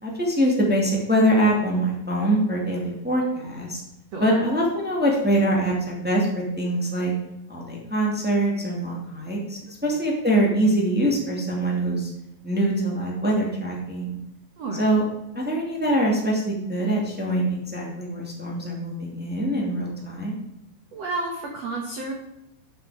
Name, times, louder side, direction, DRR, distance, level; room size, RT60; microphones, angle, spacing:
voice 1, 0.0-3.8 4.2-7.1 7.5-12.1 12.4-14.2 14.7-15.0 15.3-20.4, right 1 dB, 10° right, -3 dB, 0.6 m, -24 dB
voice 2, 4.1-4.4 14.6-14.9 20.9-22.1, right 2 dB, 65° right, 1 dB, 1.6 m, -31 dB
11.5 x 7.4 x 5.0 m, 0.87 s
omnidirectional pair, 5.0 m